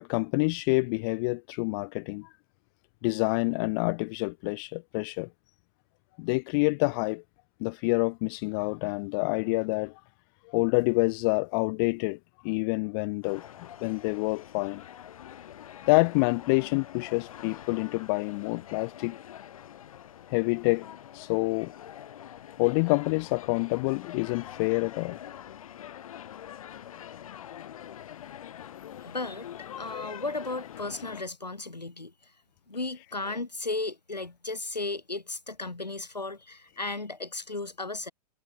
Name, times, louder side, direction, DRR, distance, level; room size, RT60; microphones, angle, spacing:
voice 1, 0.0-2.3 3.0-5.3 6.2-7.2 7.6-10.0 10.5-12.2 12.4-13.4 13.8-14.8 15.9-19.2 20.3-20.9 21.1-21.7 22.6-25.2, left 30 dB, 35° left, 0.6 m, -27 dB
sound 1, 13.2-31.2, left 10 dB, 55° left, 3.2 m, -45 dB
voice 2, 29.0-32.1 32.7-38.1, left 3 dB, 80° left, 4.9 m, -35 dB
figure-of-eight pair, 105°, 21 cm